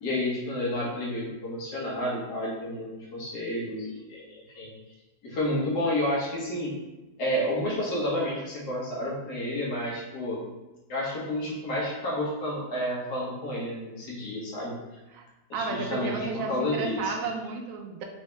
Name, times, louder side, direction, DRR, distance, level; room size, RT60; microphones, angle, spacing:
voice 1, 0.0-4.7 5.2-6.7 7.2-10.4 10.9-14.7 15.5-17.1, left 1 dB, 75° left, -4 dB, 1.6 m, -30 dB
voice 2, 15.5-18.0, right 4 dB, 65° right, 3 dB, 0.9 m, -32 dB
4.1 x 2.7 x 3.3 m, 1.1 s
omnidirectional pair, 1.7 m